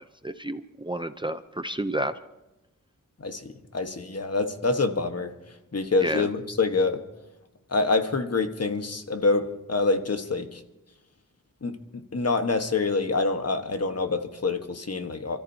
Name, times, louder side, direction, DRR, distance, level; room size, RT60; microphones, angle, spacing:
voice 1, 0.2-2.1 6.0-6.3, right 1 dB, 15° right, 10 dB, 0.6 m, -30 dB
voice 2, 3.2-5.3 5.7-7.0 7.7-10.6 11.6-15.4, left 3 dB, 50° left, 7 dB, 1.4 m, -26 dB
30.0 x 14.0 x 2.8 m, 0.96 s
wide cardioid pair, 95°, 32 cm